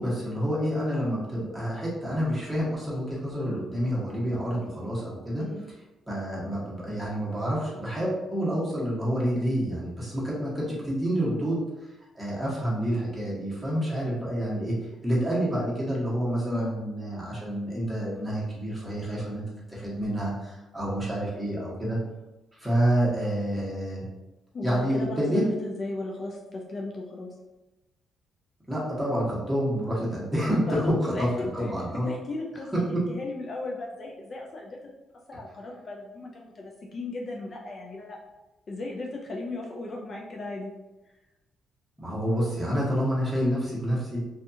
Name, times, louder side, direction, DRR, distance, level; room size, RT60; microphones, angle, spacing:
voice 1, 0.0-5.5 6.1-11.6 12.1-14.7 15.0-19.4 19.7-22.0 22.5-24.0 24.6-25.4 28.7-32.1 32.7-33.0 42.0-44.2, equal, 10° right, -6 dB, 1.2 m, -28 dB
voice 2, 24.5-27.3 30.6-31.7 32.0-34.8 35.3-38.2 38.7-40.7, left 2 dB, 45° left, -1 dB, 0.4 m, -36 dB
2.6 x 2.3 x 2.7 m, 1.0 s
cardioid pair, 90°, 0 cm